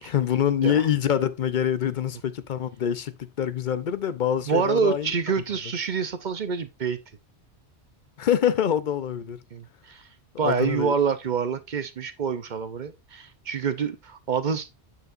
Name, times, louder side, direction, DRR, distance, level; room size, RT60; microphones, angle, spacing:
voice 1, 0.0-5.1 8.2-9.4 10.3-10.9, left 9 dB, 55° left, 0.6 m, -25 dB
voice 2, 4.5-7.0 9.5-10.1 10.4-14.7, right 6 dB, 50° right, 0.7 m, -27 dB
9.2 x 5.8 x 2.5 m
omnidirectional pair, 1.2 m